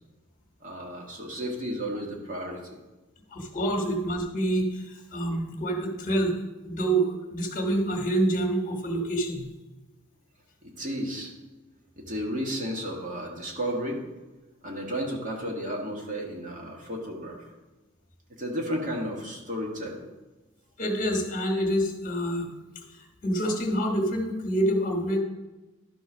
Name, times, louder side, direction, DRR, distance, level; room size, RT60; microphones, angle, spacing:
voice 1, 0.6-2.8 10.6-11.3 12.0-14.0 14.6-17.4 18.4-20.0, equal, 40° right, -1 dB, 1.6 m, -33 dB
voice 2, 3.3-6.3 6.6-9.5 20.8-22.5 22.9-25.2, right 1 dB, 40° left, 2 dB, 1.4 m, -27 dB
11.5 x 4.0 x 6.1 m, 1.1 s
head